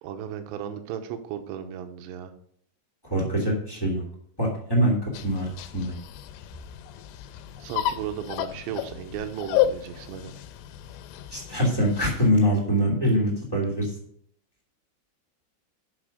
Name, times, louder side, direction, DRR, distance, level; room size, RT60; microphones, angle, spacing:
voice 1, 0.0-2.3 7.6-10.3, right 9 dB, 75° right, 7 dB, 2.9 m, -35 dB
voice 2, 3.0-4.0 4.4-6.0 11.3-13.9, equal, 20° left, -2 dB, 0.6 m, -24 dB
sound 1, 5.1-12.3, left 12 dB, 85° left, 3.2 m, -32 dB
10.5 x 6.0 x 5.2 m, 0.65 s
omnidirectional pair, 5.8 m